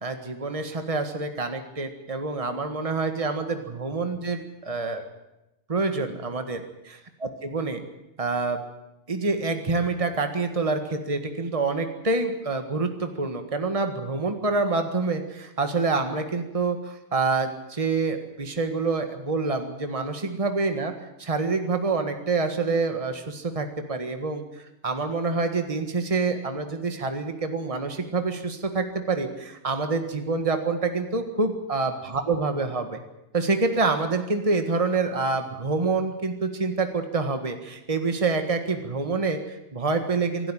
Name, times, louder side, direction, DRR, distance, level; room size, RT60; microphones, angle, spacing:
voice 1, 0.0-5.0 5.7-7.8 8.2-8.6 9.1-20.9 21.2-33.0 33.3-40.5, right 3 dB, 30° right, 6 dB, 1.8 m, -27 dB
25.5 x 12.0 x 10.0 m, 0.93 s
omnidirectional pair, 1.3 m